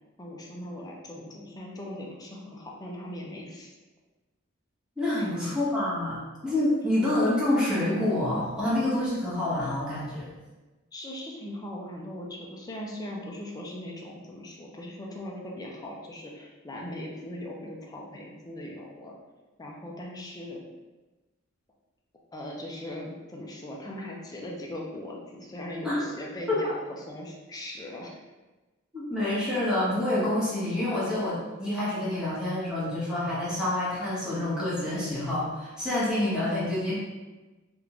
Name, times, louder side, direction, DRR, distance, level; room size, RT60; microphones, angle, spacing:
voice 1, 0.2-3.7 5.2-5.3 10.9-19.1 19.6-20.6 22.3-28.2, left 1 dB, 20° left, -2 dB, 0.5 m, -39 dB
voice 2, 5.0-10.3 25.8-26.1 26.5-26.7 28.9-37.0, left 1 dB, 5° right, -10 dB, 1.2 m, -27 dB
3.5 x 2.5 x 3.0 m, 1.2 s
head